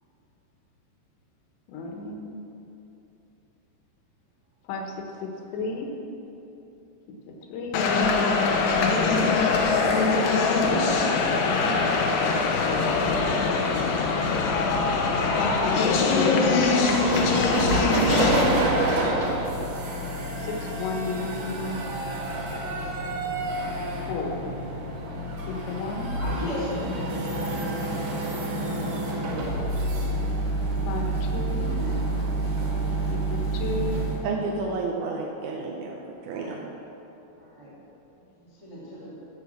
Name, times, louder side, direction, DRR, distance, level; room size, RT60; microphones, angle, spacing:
voice 1, 1.7-2.4 4.7-5.9 7.3-7.9 10.5-12.0 15.4-17.7 20.4-21.9 24.0-24.5 25.5-26.2 30.9-31.7 33.1-34.1, left 4 dB, 90° left, 1 dB, 3.5 m, -33 dB
sound 1, 7.7-18.4, left 4 dB, 70° left, 2.3 m, -22 dB
sound 2, 16.9-34.2, right 2 dB, 55° right, 2.7 m, -28 dB
voice 2, 26.2-26.8 27.8-28.0 30.8-30.9 31.3-32.3 32.5-32.8 36.3-36.6 37.4-37.7 38.4-39.1, left 1 dB, 15° right, -9 dB, 1.3 m, -38 dB
voice 3, 34.2-36.0 36.2-36.6, right 3 dB, 75° right, -1 dB, 2.5 m, -30 dB
12.0 x 6.1 x 7.3 m, 3.0 s
omnidirectional pair, 4.9 m